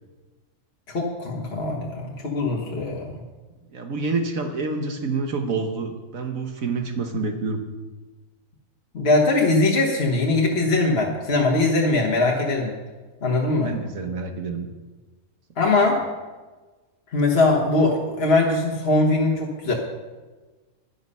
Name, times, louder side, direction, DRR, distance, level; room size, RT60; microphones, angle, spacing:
voice 1, 0.9-3.1 8.9-12.7 13.2-13.7 15.6-16.0 17.1-19.7, left 2 dB, 50° left, -1 dB, 1.5 m, -21 dB
voice 2, 3.7-7.6 13.5-14.7 15.8-15.9, right 4 dB, 75° right, 5 dB, 1.6 m, -28 dB
11.5 x 10.5 x 5.5 m, 1.3 s
omnidirectional pair, 1.4 m